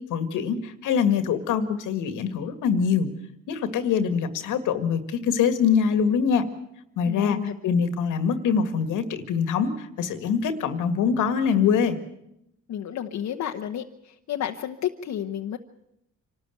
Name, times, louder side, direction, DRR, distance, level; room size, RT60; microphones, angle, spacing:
voice 1, 0.1-3.1 3.5-6.4 7.0-7.4 7.6-12.0, left 6 dB, 85° left, 10 dB, 1.9 m, -24 dB
voice 2, 7.0-7.6 12.7-15.6, left 10 dB, 65° left, 4 dB, 1.1 m, -31 dB
25.5 x 13.0 x 9.2 m, 0.80 s
cardioid pair, 90°, 30 cm